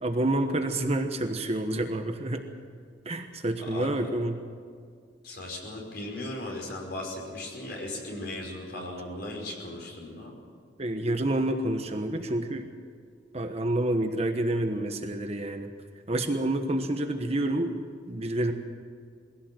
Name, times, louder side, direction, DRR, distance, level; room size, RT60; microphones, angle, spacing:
voice 1, 0.0-2.4 3.0-4.4 10.8-12.7 13.3-15.7 16.1-17.8 18.1-18.5, right 1 dB, 35° right, 6 dB, 1.2 m, -28 dB
voice 2, 3.6-4.1 5.2-10.3, left 1 dB, 60° left, 0 dB, 5.3 m, -37 dB
21.5 x 16.0 x 7.7 m, 2.1 s
head